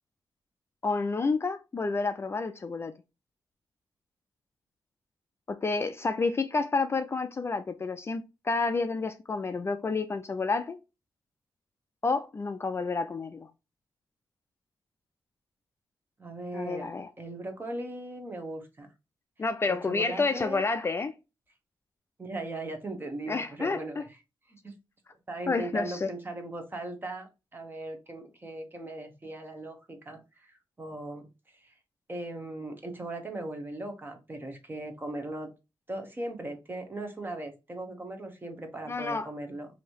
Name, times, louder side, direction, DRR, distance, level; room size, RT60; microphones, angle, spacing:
voice 1, 0.8-2.9 5.5-10.8 12.0-13.5 16.5-17.1 19.4-21.1 23.3-24.0 25.5-26.1 38.9-39.3, left 4 dB, 30° left, 0.4 m, -29 dB
voice 2, 16.2-16.9 17.2-18.9 19.7-20.6 22.2-24.1 24.5-24.7 25.3-31.3 31.5-31.7 32.1-35.5 35.9-39.7, right 2 dB, 25° right, 0.9 m, -38 dB
3.0 x 2.7 x 4.4 m
wide cardioid pair, 125°, 8 cm